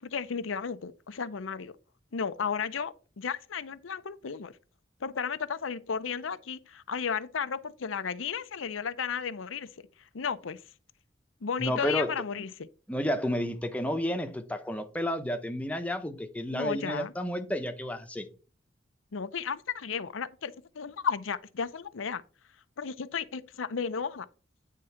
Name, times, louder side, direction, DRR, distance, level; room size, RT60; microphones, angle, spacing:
voice 1, 0.0-1.8 2.1-4.5 5.0-9.7 10.1-10.6 11.4-12.7 16.5-17.1 19.1-22.2 22.8-24.3, left 6 dB, 90° left, 0.6 m, -34 dB
voice 2, 11.6-12.5 12.9-18.3, equal, 5° left, 0.8 m, -31 dB
9.1 x 3.7 x 5.6 m
head